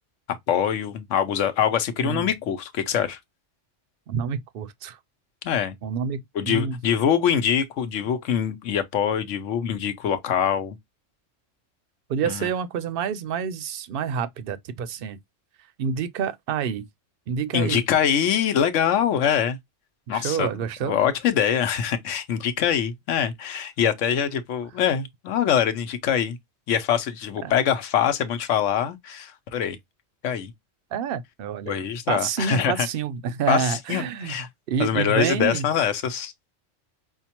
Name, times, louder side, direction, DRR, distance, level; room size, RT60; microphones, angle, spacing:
voice 1, 0.3-3.2 5.4-5.8 6.3-10.8 12.3-12.5 17.5-19.6 20.1-20.5 20.8-26.4 26.7-29.8 30.2-30.5 31.7-32.9 33.5-34.5 34.8-36.3, left 8 dB, 75° left, 1.0 m, -24 dB
voice 2, 4.1-5.0 5.8-6.8 12.1-15.2 15.8-16.9 17.3-17.8 20.1-21.0 27.4-27.5 30.9-31.8 32.1-34.4 34.7-35.7, right 7 dB, 60° right, 0.6 m, -28 dB
5.5 x 2.2 x 2.8 m
omnidirectional pair, 1.3 m